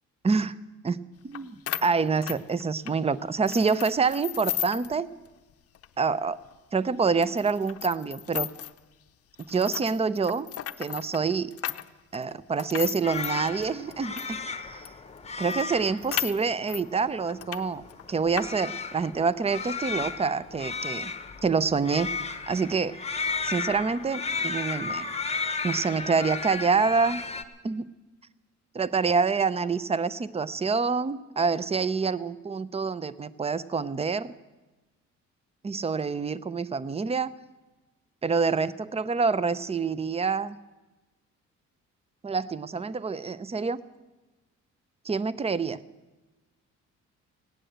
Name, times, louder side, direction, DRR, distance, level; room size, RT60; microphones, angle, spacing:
voice 1, 1.2-5.1 6.0-6.4 6.7-8.5 9.5-10.5 10.8-11.5 12.1-14.4 14.7-14.9 15.4-21.1 21.4-22.1 22.5-23.0 23.4-25.0 25.6-27.2 27.6-27.9 28.7-34.3 35.6-37.3 38.2-40.6 42.2-43.8 45.0-45.8, right 5 dB, 20° right, 18 dB, 0.6 m, -27 dB
sound 1, 1.3-1.4 1.7-3.0 3.5-4.9 5.3-5.4 5.7-5.9 6.4-6.5 7.2-8.8 9.4-14.3 14.8-14.9 15.2-15.3 15.5-16.8 17.3-17.6 17.9-18.5, left 11 dB, 50° left, 0.6 m, -35 dB
sound 2, 13.0-27.4, left 4 dB, 20° left, 1.0 m, -34 dB
16.0 x 9.9 x 7.8 m, 1.1 s
cardioid pair, 90°, 30 cm